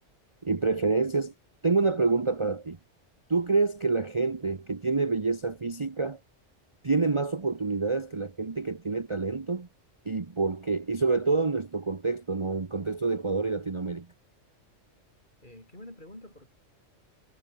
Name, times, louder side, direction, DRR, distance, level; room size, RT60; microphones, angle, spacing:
voice 1, 0.4-1.3 1.6-2.8 3.3-6.2 6.8-9.7 10.0-14.1, right 4 dB, 25° right, 1.0 m, -27 dB
voice 2, 15.4-16.5, left 1 dB, 40° left, 7.8 m, -47 dB
omnidirectional pair, 1.3 m